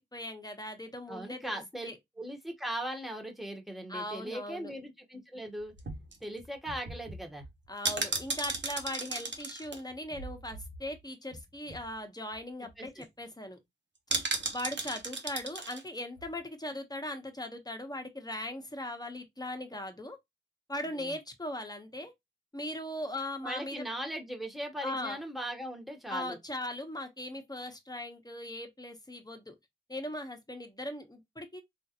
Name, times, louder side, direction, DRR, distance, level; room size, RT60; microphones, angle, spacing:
voice 1, 0.0-2.0 3.9-4.7 7.7-13.6 14.5-20.2 20.7-22.1 22.5-23.8 24.8-25.2 26.1-29.5 29.9-31.6, left 1 dB, 20° left, 1.0 m, -39 dB
voice 2, 1.1-1.9 2.2-5.7 6.2-7.4 12.8-13.0 20.9-21.1 23.4-26.4, right 1 dB, ahead, 1.1 m, -39 dB
sound 1, 5.6-11.0 11.3-11.4 11.7-11.9 12.3-12.4 12.7-13.0 14.1-15.8 16.2-16.3, right 3 dB, 85° right, 0.8 m, -36 dB
3.6 x 2.5 x 2.8 m
wide cardioid pair, 45°, 18 cm